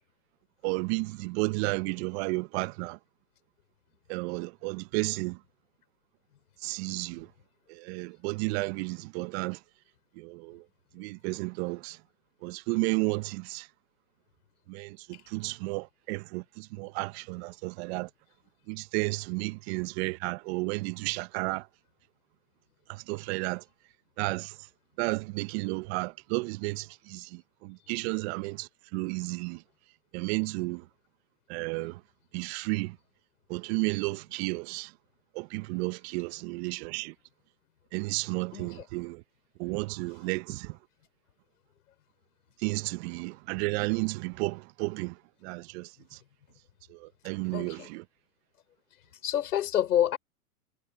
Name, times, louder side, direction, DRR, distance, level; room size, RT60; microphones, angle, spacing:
voice 1, 0.6-3.0 4.1-5.4 6.6-7.3 7.7-9.6 10.2-10.6 10.9-12.0 12.4-13.7 14.7-18.1 18.7-21.7 22.9-23.6 24.2-24.6 25.0-29.6 30.1-30.8 31.5-32.0 32.3-33.0 33.5-34.9 35.3-37.1 37.9-39.2 39.6-40.8 42.6-45.1 45.4-46.2 46.9-48.0, right 26 dB, 45° right, 1.2 m, -32 dB
voice 2, 38.5-38.8 47.5-47.9 49.2-50.2, left 11 dB, 70° left, 6.0 m, -28 dB
hypercardioid pair, 115°, 46 cm